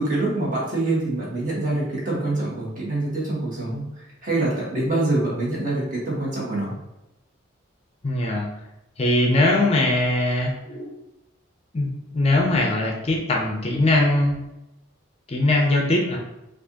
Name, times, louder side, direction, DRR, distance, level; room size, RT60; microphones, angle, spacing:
voice 1, 0.0-3.9 4.2-6.8, right 2 dB, 40° right, -6 dB, 1.4 m, -25 dB
voice 2, 8.0-8.5 9.0-10.9 11.7-14.4 15.3-16.2, left 1 dB, 30° left, 1 dB, 0.5 m, -21 dB
4.5 x 2.5 x 2.8 m, 0.91 s
head